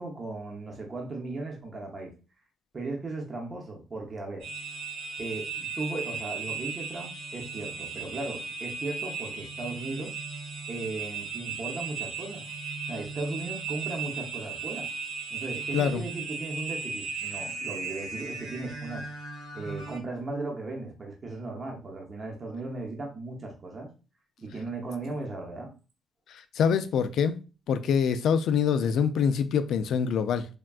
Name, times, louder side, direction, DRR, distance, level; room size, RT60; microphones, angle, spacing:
voice 1, 0.0-2.1 2.7-4.5 5.2-10.2 10.7-12.4 12.9-14.9 15.3-19.1 19.5-23.9 24.4-25.7, right 2 dB, 35° right, 0.7 m, -37 dB
sound 1, 4.4-20.0, right 5 dB, 85° right, 1.6 m, -36 dB
voice 2, 15.7-16.0 26.3-27.4 27.7-30.5, left 7 dB, 75° left, 0.3 m, -25 dB
3.4 x 2.2 x 2.3 m
cardioid pair, 90°, 0 cm